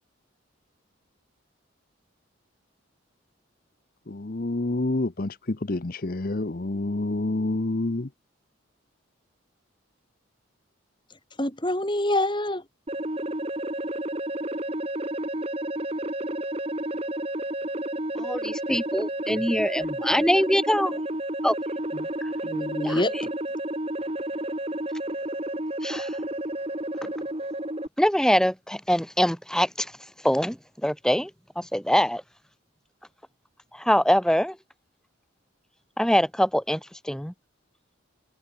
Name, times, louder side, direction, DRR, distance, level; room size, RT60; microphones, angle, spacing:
voice 1, 4.1-8.1, left 2 dB, 45° left, 0.8 m, -28 dB
voice 2, 11.4-12.6 21.9-22.1 22.4-23.3, left 1 dB, 25° left, 4.6 m, -26 dB
sound 1, 12.9-27.9, right 1 dB, 30° right, 2.6 m, -31 dB
voice 3, 18.2-21.0 21.4-21.6 22.8-23.0 25.8-26.2 27.0-27.1 28.0-29.9 30.2-31.3 31.6-32.2 33.7-34.6 36.0-37.3, equal, 5° left, 3.7 m, -24 dB
head